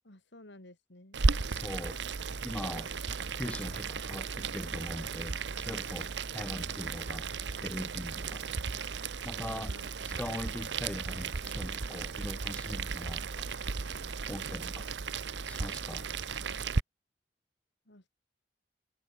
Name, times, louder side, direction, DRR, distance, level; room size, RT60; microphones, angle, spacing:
voice 1, 0.0-1.2 9.6-9.9 17.9-18.1, left 1 dB, 70° left, 4.0 m, -53 dB
Boiling, 1.1-16.8, right 4 dB, 70° right, 0.9 m, -35 dB
voice 2, 1.5-2.0 2.4-2.9 3.3-8.5 9.2-9.7 10.0-13.5 14.3-14.9 15.4-16.1, left 1 dB, 5° left, 0.3 m, -41 dB
head